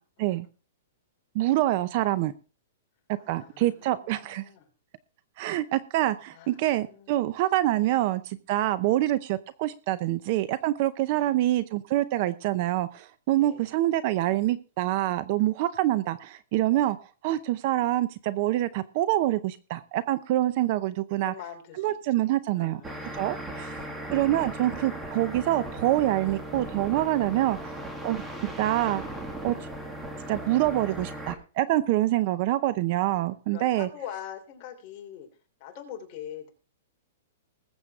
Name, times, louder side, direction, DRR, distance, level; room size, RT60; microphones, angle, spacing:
voice 1, 1.3-2.3 3.3-4.4 5.4-17.0 17.2-21.3 21.8-22.8 23.2-23.8 24.1-27.8 28.0-28.2 28.6-29.0 29.4-29.5 30.3-33.9, right 15 dB, 35° right, 15 dB, 0.6 m, -26 dB
voice 2, 3.2-4.6 6.3-7.1 7.8-7.9 8.8-9.0 11.1-11.5 13.3-13.8 21.1-23.1 27.4-27.7 33.5-35.3 35.6-36.5, left 9 dB, 30° left, 3 dB, 3.4 m, -44 dB
sound 1, 22.8-31.3, right 1 dB, 5° right, 2.1 m, -37 dB
20.5 x 8.0 x 3.6 m, 0.35 s
hypercardioid pair, 170°, 0 cm